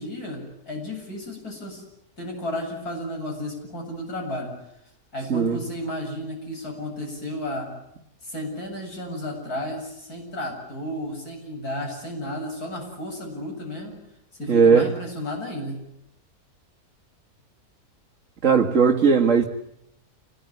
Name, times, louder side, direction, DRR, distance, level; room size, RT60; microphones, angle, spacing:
voice 1, 0.0-1.8 2.2-4.6 5.1-7.7 8.2-14.0 14.4-15.8, left 1 dB, 80° left, 8.0 m, -33 dB
voice 2, 14.5-14.9 18.4-19.4, right 5 dB, 55° right, 2.0 m, -17 dB
28.5 x 21.0 x 9.6 m
omnidirectional pair, 1.6 m